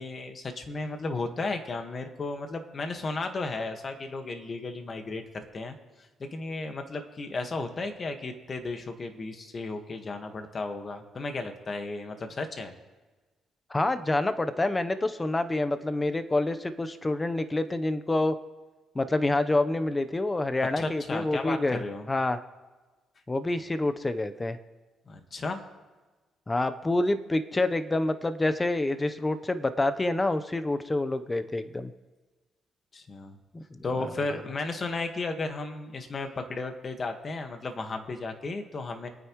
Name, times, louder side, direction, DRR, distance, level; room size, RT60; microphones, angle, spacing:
voice 1, 0.0-5.8 6.2-12.7 20.8-22.1 25.1-25.6 32.9-33.4 33.8-39.1, left 3 dB, 40° left, 6 dB, 1.6 m, -34 dB
voice 2, 13.7-18.3 18.9-21.8 22.1-22.4 23.3-24.6 26.5-31.9 33.5-34.1, left 2 dB, 20° left, 9 dB, 0.9 m, -27 dB
27.0 x 9.4 x 3.2 m, 1.3 s
cardioid pair, 90°, 0 cm